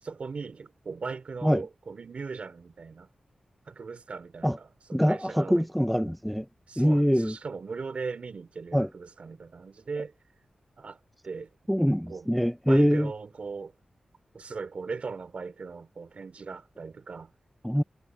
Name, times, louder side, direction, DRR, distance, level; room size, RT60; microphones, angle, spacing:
voice 1, 0.0-3.1 3.7-5.7 6.7-10.1 10.8-11.0 11.2-11.5 12.1-12.3 12.7-13.7 14.3-17.3, right 4 dB, 65° right, 3.3 m, -38 dB
voice 2, 4.9-6.5 6.8-7.4 8.7-8.9 11.7-13.1 17.6-17.8, equal, ahead, 0.4 m, -24 dB
wide cardioid pair, 80°, 2 cm